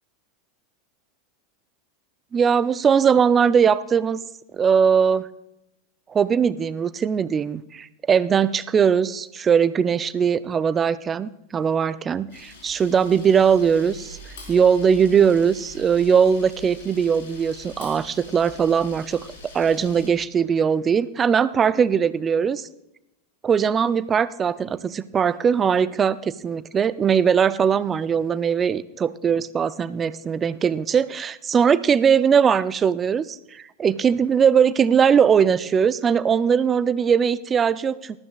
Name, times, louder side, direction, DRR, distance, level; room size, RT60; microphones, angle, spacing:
voice 1, 2.3-4.2 4.5-5.3 6.1-14.2 14.5-22.7 23.4-38.2, right 7 dB, 25° right, 16 dB, 0.5 m, -20 dB
Camera, 12.3-20.1, left 2 dB, 70° left, 4.5 m, -44 dB
19.0 x 13.5 x 2.4 m, 0.87 s
hypercardioid pair, 95°, 0 cm